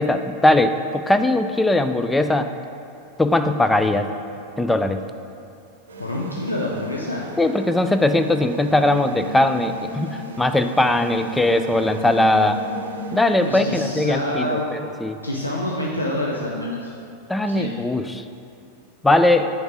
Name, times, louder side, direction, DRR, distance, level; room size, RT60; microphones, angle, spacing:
voice 1, 0.0-2.5 3.2-4.1 4.6-5.0 7.4-12.6 13.1-15.2 17.3-18.2 19.0-19.5, left 2 dB, 5° left, 8 dB, 0.3 m, -20 dB
sound 1, 5.9-13.9, right 1 dB, 70° right, 0.7 m, -34 dB
voice 2, 6.0-7.2 13.4-14.8 15.2-16.9 17.5-17.7, left 1 dB, 85° left, -3 dB, 0.6 m, -27 dB
7.9 x 3.6 x 4.8 m, 2.6 s
figure-of-eight pair, 90°, 0 cm